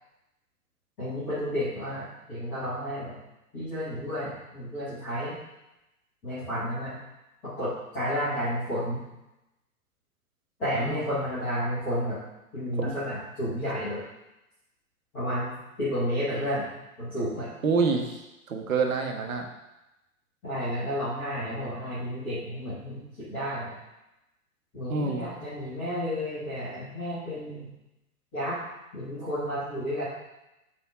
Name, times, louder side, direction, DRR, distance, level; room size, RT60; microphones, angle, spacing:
voice 1, 1.0-3.2 3.5-5.4 6.2-7.0 7.6-9.0 10.6-12.2 12.5-14.0 15.1-15.5 15.8-16.7 17.0-17.5 20.4-23.7 24.7-27.7 28.3-28.6 28.9-30.1, equal, 5° left, -14 dB, 0.3 m, -31 dB
voice 2, 17.6-18.2 18.5-19.5 24.9-25.3, right 4 dB, 60° right, 4 dB, 1.3 m, -27 dB
7.4 x 3.4 x 5.8 m, 0.95 s
figure-of-eight pair, 110°, 45 cm